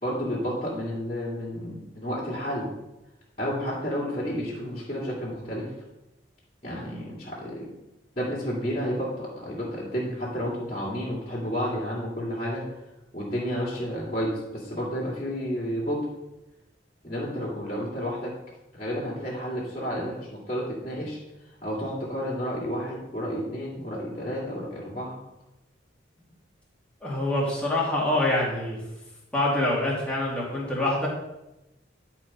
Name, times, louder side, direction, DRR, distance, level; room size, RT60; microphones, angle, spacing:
voice 1, 0.0-2.7 3.4-5.7 6.6-7.7 8.1-12.6 13.1-16.1 17.0-18.3 18.7-21.2 21.6-25.1, equal, 30° left, -9 dB, 2.3 m, -31 dB
voice 2, 27.0-28.8 29.3-31.1, left 1 dB, 5° left, -6 dB, 2.4 m, -25 dB
10.5 x 4.5 x 5.3 m, 0.93 s
head